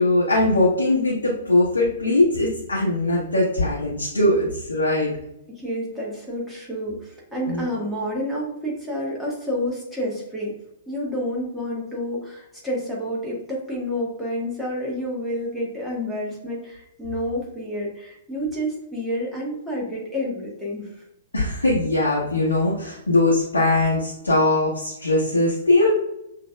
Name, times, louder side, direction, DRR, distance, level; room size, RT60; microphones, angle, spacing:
voice 1, 0.0-5.1 7.5-7.6 21.3-25.9, left 2 dB, 75° left, -6 dB, 1.0 m, -20 dB
voice 2, 5.5-10.5 10.9-20.9, equal, ahead, -5 dB, 1.4 m, -29 dB
6.1 x 2.8 x 2.2 m, 0.83 s
figure-of-eight pair, 110°, 0 cm